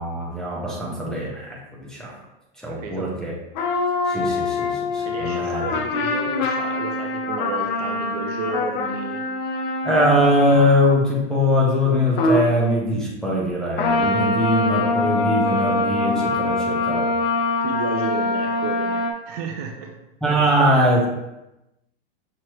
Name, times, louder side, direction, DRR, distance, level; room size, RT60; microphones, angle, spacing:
voice 1, 0.0-2.1 2.6-3.3 4.1-5.6 9.8-17.1 20.2-21.1, equal, ahead, -4 dB, 0.6 m, -21 dB
voice 2, 2.7-3.1 5.0-9.2 17.6-19.9, right 4 dB, 40° right, 2 dB, 0.5 m, -32 dB
sound 1, 3.5-11.0 12.2-12.5 13.8-19.1, left 2 dB, 60° left, 0.7 m, -24 dB
6.3 x 2.9 x 2.9 m, 0.93 s
supercardioid pair, 155°, 29 cm